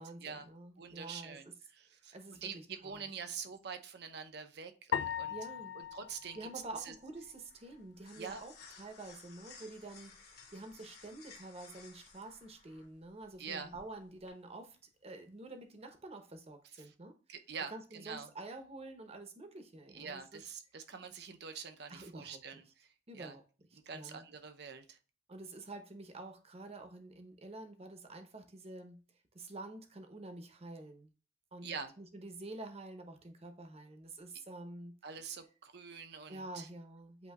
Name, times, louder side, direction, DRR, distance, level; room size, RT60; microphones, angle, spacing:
voice 1, 0.0-1.5 2.1-3.1 5.3-5.8 6.3-14.8 15.0-17.1 17.7-20.4 21.9-22.4 23.1-23.4 23.7-24.3 25.3-29.0 29.3-31.1 31.5-34.9 36.3-37.3, right 2 dB, 35° right, 6 dB, 0.8 m, -48 dB
voice 2, 0.8-5.3 5.7-6.5 6.8-6.9 8.2-8.4 13.4-13.7 16.8-16.9 17.3-18.3 19.9-22.7 23.1-23.3 23.9-25.0 31.6-31.9 35.0-36.7, right 6 dB, 65° right, 8 dB, 0.7 m, -45 dB
sound 1, 4.9-7.4, left 8 dB, 80° left, 0.3 m, -39 dB
sound 2, 5.8-14.3, left 5 dB, 60° left, 1.5 m, -58 dB
8.1 x 2.7 x 2.3 m, 0.36 s
head